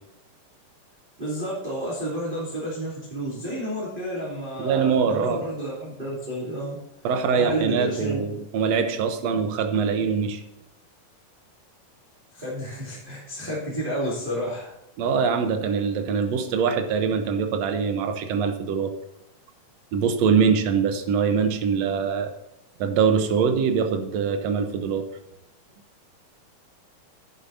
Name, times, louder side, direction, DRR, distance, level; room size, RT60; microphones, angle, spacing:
voice 1, 1.2-6.8 7.3-8.2 9.0-9.1 12.3-14.7, right 1 dB, 15° right, -7 dB, 2.4 m, -31 dB
voice 2, 4.6-5.4 7.0-10.4 15.0-18.9 19.9-22.3 22.8-25.1, right 6 dB, 70° right, 7 dB, 1.8 m, -23 dB
11.0 x 10.5 x 2.7 m, 0.87 s
omnidirectional pair, 3.9 m